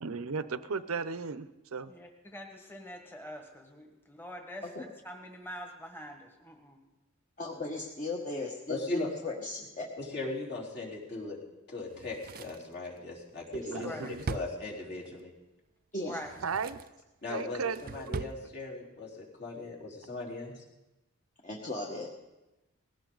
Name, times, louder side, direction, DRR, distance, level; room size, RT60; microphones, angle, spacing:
voice 1, 0.0-1.9 13.7-14.3 16.4-16.8 17.3-18.3, right 5 dB, 75° right, 14 dB, 0.7 m, -35 dB
voice 2, 1.9-6.8 13.8-14.1 16.0-16.3, equal, 10° left, 3 dB, 1.6 m, -45 dB
voice 3, 7.4-9.9 13.5-14.0 15.9-16.2 21.4-22.1, left 2 dB, 35° left, -1 dB, 1.6 m, -37 dB
voice 4, 8.7-9.1 10.0-11.4 11.7-15.3 17.2-20.6, left 3 dB, 55° left, -3 dB, 4.0 m, -39 dB
Drawer open or close, 11.9-15.2 16.1-17.0 17.4-18.4 18.7-18.8, right 4 dB, 45° right, 0.4 m, -42 dB
19.5 x 16.5 x 4.0 m, 1.0 s
head